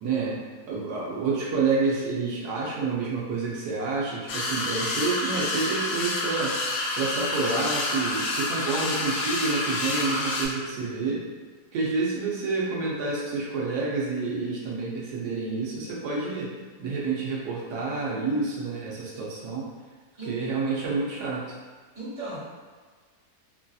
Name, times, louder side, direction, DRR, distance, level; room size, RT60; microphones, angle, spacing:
voice 1, 0.0-0.4 0.7-6.6 7.0-11.2 11.7-16.5 16.8-19.7 20.3-21.6, right 4 dB, 85° right, -5 dB, 1.2 m, -28 dB
sound 1, 4.3-10.5, left 2 dB, 85° left, 0.5 m, -28 dB
voice 2, 21.9-22.4, right 2 dB, 50° right, -10 dB, 1.5 m, -36 dB
3.1 x 2.6 x 2.3 m, 1.5 s
omnidirectional pair, 1.7 m